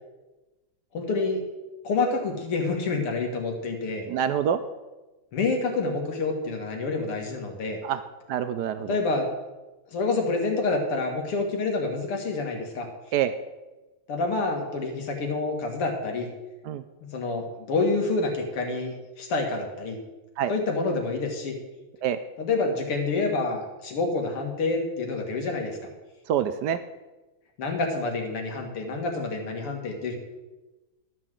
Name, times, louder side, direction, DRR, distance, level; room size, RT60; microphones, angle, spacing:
voice 1, 0.9-1.4 1.8-4.1 5.3-7.8 8.9-9.3 9.9-12.9 14.1-16.3 17.0-20.0 20.5-21.6 22.4-25.8 27.6-30.2, left 3 dB, 90° left, 3 dB, 2.8 m, -28 dB
voice 2, 4.1-4.6 7.8-8.0 8.3-9.0 13.1-13.3 16.7-16.8 20.4-20.5 22.0-22.2 26.3-26.8, right 9 dB, 85° right, 11 dB, 0.9 m, -26 dB
12.5 x 6.0 x 7.4 m, 1.1 s
omnidirectional pair, 2.4 m